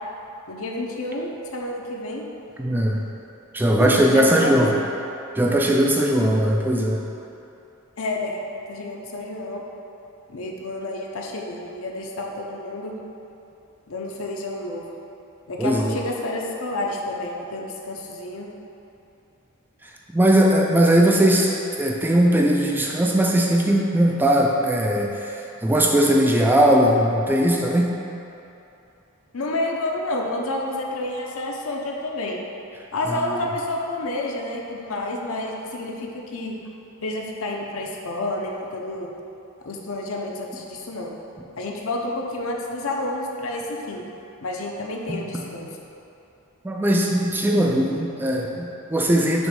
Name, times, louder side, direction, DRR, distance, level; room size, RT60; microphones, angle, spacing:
voice 1, 0.5-2.2 3.8-4.9 8.0-8.3 8.7-9.6 10.3-12.9 13.9-14.9 15.5-18.5 29.3-32.4 32.9-36.6 37.0-39.1 39.6-41.1 41.6-44.1 44.4-45.7, left 2 dB, 70° left, 0 dB, 0.7 m, -29 dB
voice 2, 2.6-3.0 3.5-4.7 5.4-7.0 15.6-16.0 19.8-28.0 33.1-33.4 45.1-45.4 46.6-49.5, right 1 dB, 10° right, -1 dB, 0.3 m, -19 dB
6.1 x 3.2 x 5.2 m, 2.9 s
head